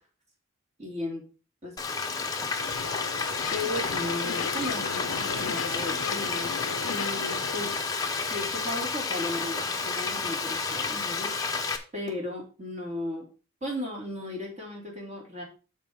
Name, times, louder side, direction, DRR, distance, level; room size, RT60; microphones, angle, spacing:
voice 1, 0.8-1.3 1.6-2.5 3.5-6.6 6.9-7.7 8.3-11.3 11.9-13.3 13.6-15.4, left 1 dB, 35° right, -1 dB, 2.7 m, -36 dB
Frying (food), 1.8-11.8, left 4 dB, 15° left, 0.8 m, -31 dB
sound 1, 2.6-7.8, left 6 dB, 75° left, 0.5 m, -35 dB
12.0 x 4.6 x 3.5 m, 0.34 s
head